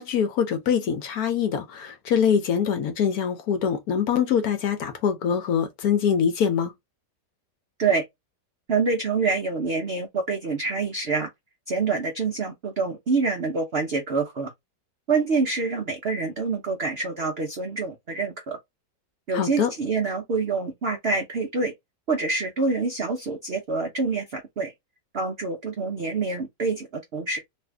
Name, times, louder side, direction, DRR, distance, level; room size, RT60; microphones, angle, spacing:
voice 1, 0.0-6.7 19.3-19.7, left 7 dB, 65° left, 1.0 m, -24 dB
voice 2, 8.7-11.3 11.7-14.5 15.1-18.6 19.3-21.7 22.1-24.7 25.1-27.4, right 4 dB, 70° right, 0.5 m, -26 dB
2.7 x 2.6 x 3.3 m
omnidirectional pair, 1.9 m